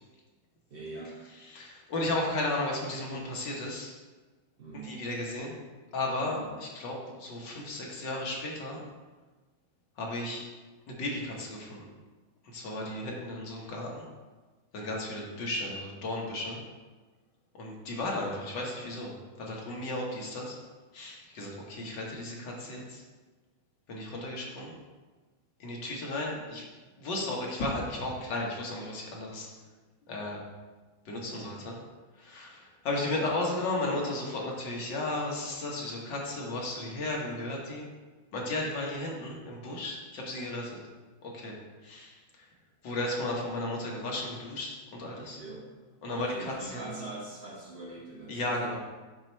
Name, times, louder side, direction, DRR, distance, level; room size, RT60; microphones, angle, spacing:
voice 1, 0.7-1.2 4.6-5.0 6.3-6.6 31.3-31.6 45.4-45.7 46.0-48.8, right 2 dB, 55° right, -5 dB, 0.6 m, -43 dB
voice 2, 1.5-3.9 4.8-5.6 5.9-8.8 10.0-10.4 10.9-11.8 12.4-14.1 14.7-16.6 17.5-20.6 20.9-23.0 23.9-24.7 25.6-26.6 27.0-29.5 30.1-30.4 31.1-31.8 32.2-37.9 38.3-40.8 41.2-41.6 41.8-42.5 42.8-45.4 46.0-46.9 48.3-48.8, left 2 dB, 60° left, -2 dB, 1.7 m, -34 dB
7.6 x 2.9 x 5.4 m, 1.3 s
omnidirectional pair, 2.3 m